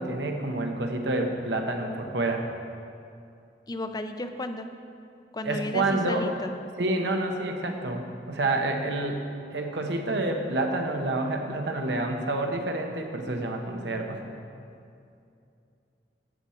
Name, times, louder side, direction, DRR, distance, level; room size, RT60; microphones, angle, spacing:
voice 1, 0.0-2.5 5.4-6.3 6.8-9.2 9.5-14.2, right 2 dB, 75° right, 3 dB, 1.1 m, -28 dB
voice 2, 3.7-4.7 5.3-6.5, left 1 dB, 20° left, 8 dB, 0.5 m, -33 dB
12.5 x 6.5 x 4.4 m, 2.5 s
head